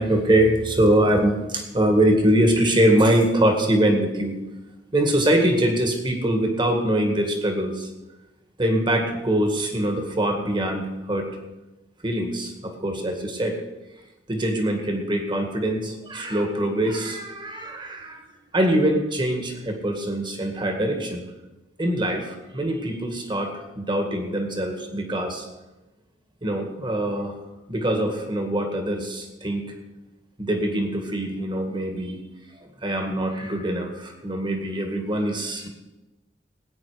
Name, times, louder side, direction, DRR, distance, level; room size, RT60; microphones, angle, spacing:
voice 1, 0.0-4.4 4.9-7.9 8.6-11.3 12.0-13.6 14.3-18.3 18.5-21.2 21.8-25.5 26.4-27.4 27.7-29.7 30.4-32.2 32.8-35.7, right 1 dB, 25° right, 4 dB, 2.0 m, -23 dB
19.0 x 9.0 x 5.1 m, 1.1 s
head